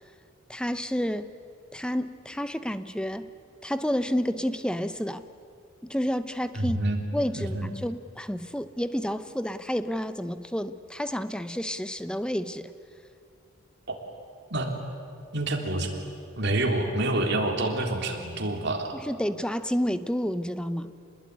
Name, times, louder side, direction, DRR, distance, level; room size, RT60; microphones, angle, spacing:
voice 1, 0.5-1.3 1.7-3.3 3.6-5.2 5.9-6.8 7.1-12.7 18.9-21.0, equal, 5° left, 12 dB, 0.8 m, -30 dB
voice 2, 6.5-7.0 7.3-7.7 13.9-14.0 14.5-14.8 15.3-15.9 16.4-18.9, right 1 dB, 55° right, 2 dB, 3.5 m, -27 dB
27.0 x 20.5 x 9.6 m, 2.4 s
head